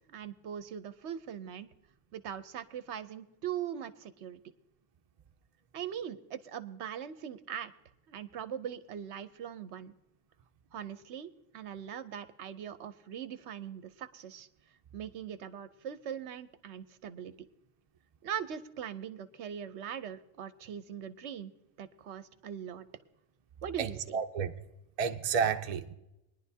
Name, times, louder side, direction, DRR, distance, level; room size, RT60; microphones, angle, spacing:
voice 1, 0.1-1.7 2.1-4.4 5.7-7.7 8.1-9.9 10.7-14.5 14.9-17.3 18.2-21.5 21.8-22.9 23.6-24.2, right 9 dB, 65° right, 0.8 m, -41 dB
voice 2, 23.8-24.5 25.0-25.9, right 6 dB, 45° right, 0.5 m, -31 dB
21.5 x 10.5 x 2.7 m
omnidirectional pair, 1.3 m